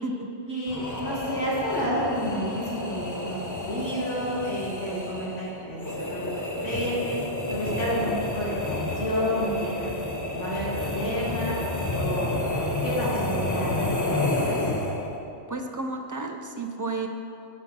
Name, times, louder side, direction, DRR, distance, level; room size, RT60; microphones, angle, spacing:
voice 1, 0.5-7.2 7.5-11.6 11.9-12.3 12.8-14.6, equal, 80° left, -7 dB, 2.8 m, -30 dB
sound 1, 0.7-15.2, left 1 dB, 20° left, 0.7 m, -30 dB
voice 2, 15.5-17.1, right 3 dB, 25° right, 4 dB, 0.4 m, -32 dB
9.6 x 5.8 x 6.1 m, 2.7 s
omnidirectional pair, 1.2 m